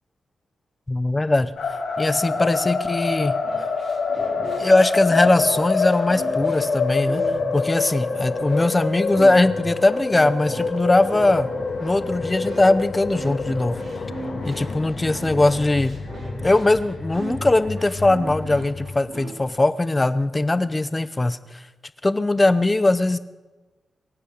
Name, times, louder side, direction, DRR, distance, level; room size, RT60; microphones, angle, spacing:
voice 1, 0.9-1.5 2.0-3.4 4.6-7.2 7.5-11.5 11.8-13.8 14.4-16.0 16.4-21.6 22.0-23.2, left 2 dB, 15° left, 14 dB, 0.7 m, -20 dB
sound 1, 1.6-19.0, left 4 dB, 55° left, 2.4 m, -27 dB
sound 2, 3.4-19.5, right 2 dB, 45° right, 2.9 m, -37 dB
23.0 x 8.9 x 6.5 m, 1.2 s
wide cardioid pair, 140°, 0 cm